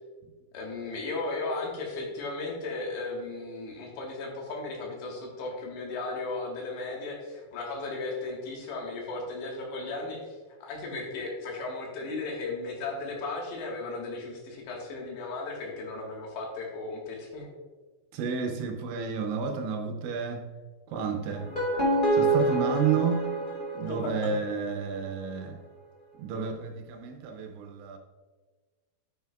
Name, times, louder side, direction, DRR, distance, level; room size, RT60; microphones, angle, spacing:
voice 1, 0.5-10.4 10.6-17.5 23.9-24.3, left 3 dB, 70° left, 3.4 m, -35 dB
voice 2, 18.1-20.5 20.9-21.5 22.1-23.4 23.7-25.6 26.2-28.0, right 6 dB, 80° right, 2.9 m, -31 dB
sound 1, 21.3-24.5, right 2 dB, 30° left, 0.9 m, -27 dB
9.3 x 9.0 x 2.3 m
omnidirectional pair, 5.6 m